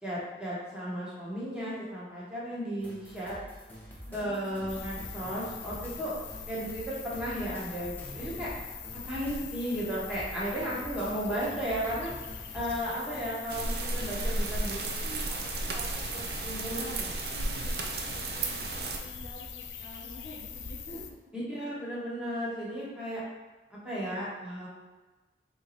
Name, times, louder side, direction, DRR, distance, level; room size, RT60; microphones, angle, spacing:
voice 1, 0.0-3.4 4.1-6.1 6.5-8.5 8.9-12.1 12.5-15.2 15.6-15.8 16.1-17.1 21.3-23.2 23.7-24.7, equal, 5° right, -8 dB, 1.0 m, -35 dB
sound 1, 2.8-14.6, equal, 10° left, 0.7 m, -47 dB
voice 2, 4.1-4.8 16.7-21.2, equal, 50° left, -3 dB, 0.6 m, -48 dB
sound 2, 4.7-21.1, left 7 dB, 85° left, 0.4 m, -43 dB
sound 3, 13.5-19.0, right 2 dB, 60° right, 0.5 m, -33 dB
3.8 x 3.0 x 4.1 m, 1.2 s
head